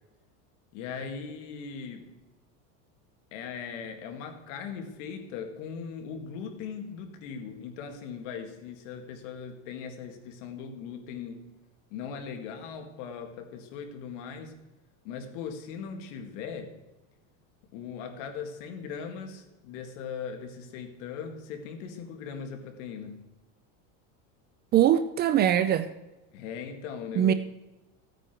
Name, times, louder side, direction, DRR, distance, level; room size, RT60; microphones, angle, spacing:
voice 1, 0.7-2.1 3.3-11.5 11.9-14.5 15.0-16.8 17.7-23.3 26.3-27.3, left 6 dB, 70° left, 2.2 m, -39 dB
voice 2, 24.7-25.9 27.2-27.3, right 11 dB, 25° right, 0.4 m, -22 dB
15.5 x 9.1 x 4.5 m
supercardioid pair, 150°, 38 cm